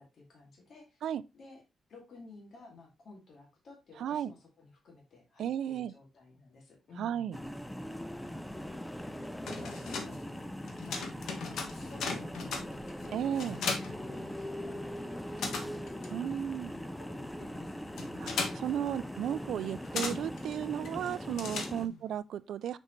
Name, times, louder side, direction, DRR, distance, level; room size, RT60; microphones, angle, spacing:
voice 1, 0.0-1.0 1.3-1.6 1.9-7.3 8.2-8.5 9.4-10.4 10.8-11.1 11.5-13.3 14.4-18.1 21.8-22.1, left 3 dB, 50° left, 2.3 m, -53 dB
voice 2, 4.0-4.3 5.4-5.9 7.0-7.4 13.1-13.6 16.1-16.7 18.2-22.8, right 9 dB, 80° right, 0.4 m, -34 dB
sound 1, 7.3-21.9, equal, 5° left, 0.5 m, -41 dB
sound 2, 9.2-14.8 15.1-22.2, left 4 dB, 85° left, 1.5 m, -39 dB
6.5 x 5.3 x 3.1 m
wide cardioid pair, 150°, 0 cm